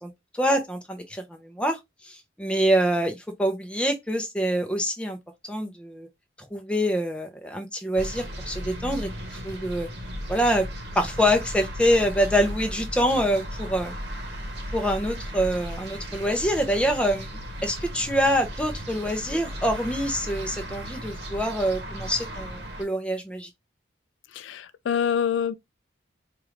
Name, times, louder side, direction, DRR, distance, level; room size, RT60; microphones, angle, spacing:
voice 1, 0.0-5.2 5.5-6.1 6.4-9.9 10.3-10.6 10.9-13.9 14.7-23.5, equal, 5° left, 0.6 m, -25 dB
sound 1, 8.0-22.8, equal, 60° right, 1.0 m, -36 dB
voice 2, 24.3-25.5, left 8 dB, 80° left, 0.3 m, -26 dB
4.6 x 2.5 x 3.1 m
head